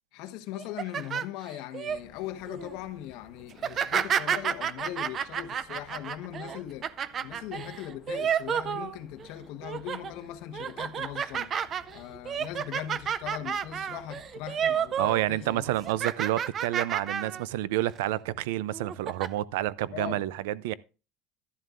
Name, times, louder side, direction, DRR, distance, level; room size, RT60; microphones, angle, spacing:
voice 1, 0.1-6.9 7.2-11.5 11.9-15.6 19.9-20.2, left 12 dB, 55° left, 1.2 m, -39 dB
sound 1, 0.5-2.0 2.5-2.8 3.5-9.3 9.6-10.1 10.5-15.2 15.5-17.4 17.8-18.0 18.7-19.3, right 8 dB, 25° right, 0.4 m, -31 dB
sound 2, 1.9-16.0, left 6 dB, 35° left, 1.4 m, -56 dB
voice 2, 15.0-20.7, right 15 dB, 80° right, 0.4 m, -29 dB
12.5 x 11.0 x 2.5 m
cardioid pair, 170°, 0 cm